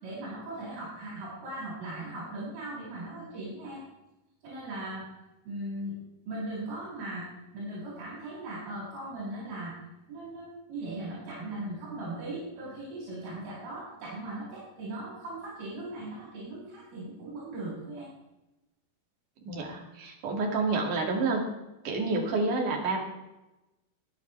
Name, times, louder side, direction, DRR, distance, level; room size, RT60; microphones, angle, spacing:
voice 1, 0.0-3.8 4.4-5.1 5.4-6.0 6.3-7.3 7.5-9.8 10.1-18.1, right 1 dB, 70° right, -7 dB, 7.5 m, -38 dB
voice 2, 19.4-21.4 21.8-23.0, right 3 dB, 50° right, 0 dB, 3.2 m, -29 dB
24.5 x 8.4 x 3.4 m, 0.97 s
omnidirectional pair, 5.8 m